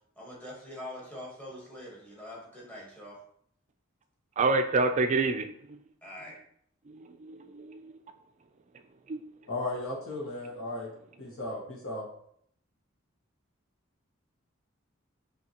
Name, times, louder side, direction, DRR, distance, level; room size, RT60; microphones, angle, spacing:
voice 1, 0.2-3.2 6.0-6.4, left 1 dB, 5° left, -5 dB, 1.3 m, -44 dB
voice 2, 4.4-5.8 6.9-8.0 9.1-9.2, right 3 dB, 35° right, 7 dB, 0.3 m, -28 dB
voice 3, 9.5-10.9 11.2-12.1, left 2 dB, 90° left, -1 dB, 1.3 m, -35 dB
5.4 x 2.8 x 2.9 m, 0.66 s
head